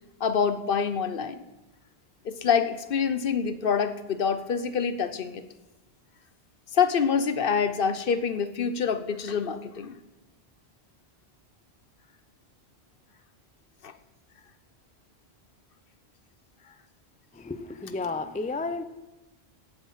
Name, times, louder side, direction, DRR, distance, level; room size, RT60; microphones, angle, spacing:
voice 1, 0.2-1.4 2.2-5.4 6.7-10.0 13.8-13.9, left 6 dB, 60° left, 11 dB, 0.9 m, -26 dB
voice 2, 17.3-18.8, left 3 dB, 10° left, 10 dB, 0.3 m, -32 dB
16.5 x 7.3 x 5.7 m, 1.0 s
omnidirectional pair, 1.1 m